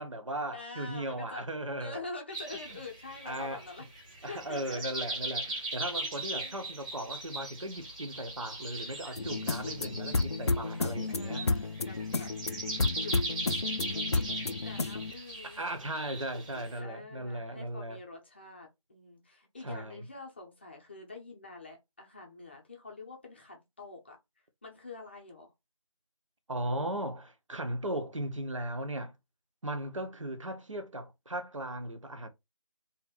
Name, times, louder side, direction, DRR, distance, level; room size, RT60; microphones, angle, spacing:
voice 1, 0.0-2.0 3.2-3.6 4.2-11.4 15.4-18.0 19.6-20.0 26.5-29.1 29.6-32.3, right 1 dB, 65° right, 1.3 m, -37 dB
voice 2, 0.5-1.4 1.8-3.8 4.3-4.8 5.9-6.7 9.3-10.2 11.1-12.3 13.0-13.4 13.7-15.6 16.3-24.2 24.6-25.5, left 3 dB, 20° left, 0.7 m, -46 dB
sound 1, 2.3-16.8, right 2 dB, 10° right, 1.4 m, -39 dB
sound 2, 9.2-15.1, left 3 dB, 50° left, 0.5 m, -32 dB
3.9 x 2.9 x 4.3 m
figure-of-eight pair, 165°, 18 cm